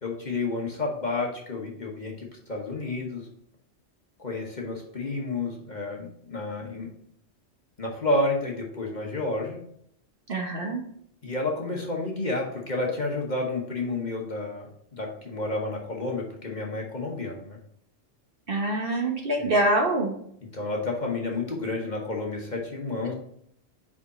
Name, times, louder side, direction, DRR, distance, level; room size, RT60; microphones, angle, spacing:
voice 1, 0.0-3.3 4.2-6.9 7.8-9.6 11.2-17.6 19.4-19.5 20.5-23.1, left 2 dB, 40° left, -1 dB, 1.0 m, -30 dB
voice 2, 10.3-10.8 18.5-20.2, right 1 dB, 50° right, 1 dB, 1.1 m, -25 dB
4.9 x 4.8 x 4.1 m, 0.69 s
omnidirectional pair, 1.3 m